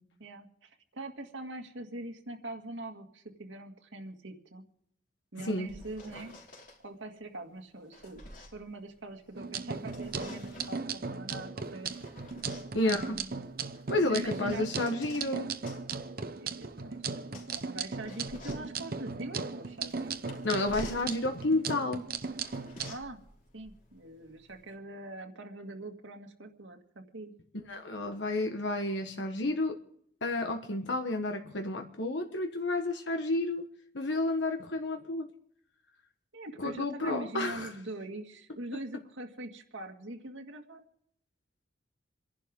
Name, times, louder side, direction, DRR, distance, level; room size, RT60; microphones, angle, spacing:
voice 1, 0.2-4.7 5.3-6.4 6.8-8.2 8.5-11.9 12.8-13.4 14.1-14.7 16.4-20.1 22.9-23.2 23.5-27.3 36.3-40.8, right 1 dB, 80° right, 4 dB, 2.0 m, -43 dB
voice 2, 5.4-5.7 12.7-13.2 13.9-15.5 20.4-22.0 27.7-29.7 30.2-33.7 33.9-35.3 36.6-37.7, left 2 dB, 70° left, 4 dB, 1.3 m, -31 dB
sound 1, 5.4-6.8 7.6-9.4 9.7-10.9 11.6-15.3 15.7-24.7, left 1 dB, 45° left, 3.2 m, -51 dB
sound 2, 9.4-22.9, right 4 dB, 50° right, 0.9 m, -37 dB
27.5 x 11.5 x 3.7 m, 0.69 s
head